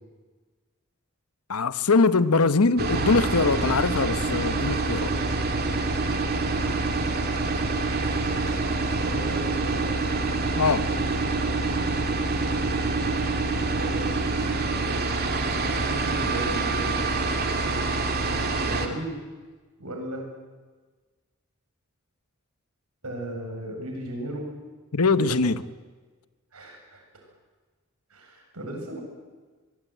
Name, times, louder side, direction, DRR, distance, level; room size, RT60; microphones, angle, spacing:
voice 1, 1.5-5.1 10.6-10.9 24.9-25.6, left 3 dB, 85° left, 1.1 m, -22 dB
sound 1, 2.8-18.9, right 3 dB, 45° right, 2.6 m, -26 dB
sound 2, 3.4-3.5 4.1-4.2 4.9-5.0 5.7-5.9 6.5-6.7 7.1-7.3 7.6-7.7 8.0-8.2 8.5-9.5 9.7-10.6 10.9-12.2 12.4-12.6 12.9-13.0 13.3-13.4 13.7-13.9 14.2-14.3 14.6-16.4 16.6-16.8 17.1-17.2, right 2 dB, 60° right, 7.4 m, -48 dB
voice 2, 7.8-8.2 8.8-10.1 13.8-14.2 15.7-17.0 18.6-19.2 19.8-20.2 23.0-24.5 25.0-25.4 26.5-27.3 28.1-29.0, right 1 dB, 85° right, 7.8 m, -36 dB
26.0 x 20.5 x 9.4 m
head